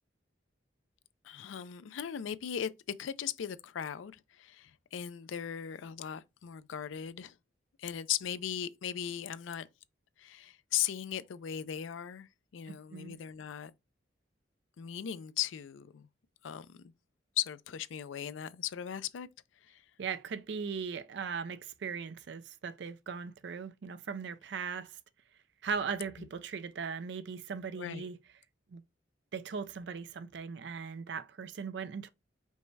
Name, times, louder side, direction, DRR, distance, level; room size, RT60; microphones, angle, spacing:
voice 1, 1.2-2.7 3.0-7.4 7.8-9.7 10.2-13.7 14.8-16.1 16.4-16.9 17.4-19.3 19.6-19.8 26.2-26.3 27.7-28.1, left 10 dB, 80° left, 0.4 m, -38 dB
voice 2, 12.7-13.2 20.0-25.0 25.6-28.2 28.7-28.8 29.3-32.1, right 6 dB, 65° right, 0.4 m, -39 dB
5.3 x 2.1 x 4.6 m
head